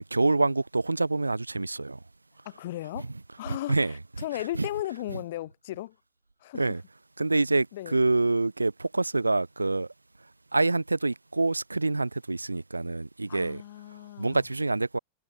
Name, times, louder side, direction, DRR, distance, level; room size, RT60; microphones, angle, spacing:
voice 1, 0.0-2.0 3.0-3.1 3.5-4.0 4.3-4.7 6.5-6.8 7.2-9.9 10.5-13.6 14.2-15.0, right 2 dB, 80° right, 1.6 m, -26 dB
voice 2, 2.5-3.1 3.4-3.8 4.2-5.9 6.4-6.6 7.7-8.0 13.3-14.4, left 15 dB, 55° left, 3.4 m, -35 dB
figure-of-eight pair, 90°, 0 cm